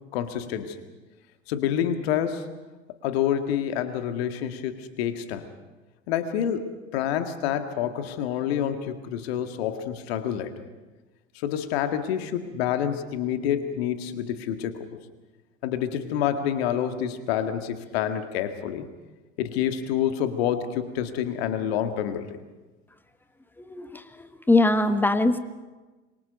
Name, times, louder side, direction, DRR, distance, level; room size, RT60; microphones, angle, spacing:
voice 1, 0.1-0.8 1.5-2.5 3.0-5.5 6.1-10.5 11.4-14.9 15.6-18.9 19.4-22.4, left 9 dB, 55° left, 8 dB, 2.0 m, -28 dB
voice 2, 23.7-25.4, left 2 dB, 5° left, 12 dB, 1.2 m, -22 dB
26.5 x 23.5 x 5.3 m, 1.2 s
figure-of-eight pair, 75°, 36 cm